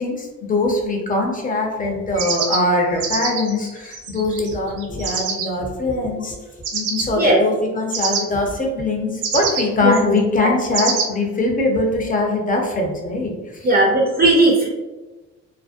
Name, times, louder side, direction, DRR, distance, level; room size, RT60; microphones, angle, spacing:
voice 1, 0.0-6.4 6.7-13.7, left 2 dB, 25° left, 1 dB, 0.6 m, -22 dB
sound 1, 2.2-5.5 6.6-7.1 7.9-8.2 9.2-9.6 10.7-11.1, right 6 dB, 85° right, 0.5 m, -25 dB
voice 2, 13.6-14.7, right 2 dB, 30° right, -2 dB, 0.5 m, -16 dB
2.5 x 2.0 x 2.4 m, 1.2 s
cardioid pair, 90°, 30 cm